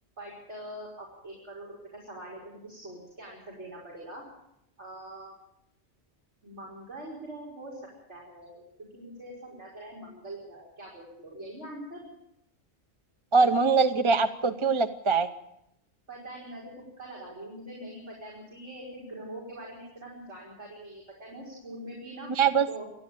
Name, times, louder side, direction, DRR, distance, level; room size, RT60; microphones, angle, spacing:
voice 1, 0.2-4.2 4.8-5.3 6.4-7.8 8.1-12.1 16.1-16.7 17.0-22.3 22.7-22.8, right 1 dB, 85° right, -4 dB, 5.8 m, -43 dB
voice 2, 13.3-15.3 22.4-22.7, right 5 dB, 30° right, 8 dB, 0.8 m, -22 dB
28.0 x 10.5 x 8.9 m, 0.80 s
omnidirectional pair, 1.2 m